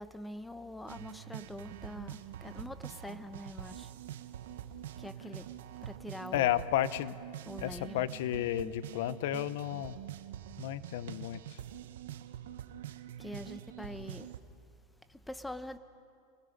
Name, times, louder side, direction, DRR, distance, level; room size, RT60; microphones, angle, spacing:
voice 1, 0.0-3.9 4.5-6.6 7.5-8.1 13.2-14.4 15.0-15.8, left 1 dB, 5° left, 1.0 m, -45 dB
sound 1, 0.9-14.4, right 11 dB, 85° right, 1.1 m, -45 dB
voice 2, 6.3-7.2 7.6-10.0 10.6-11.6, left 13 dB, 70° left, 0.8 m, -32 dB
28.5 x 21.0 x 5.3 m
supercardioid pair, 125°, 0 cm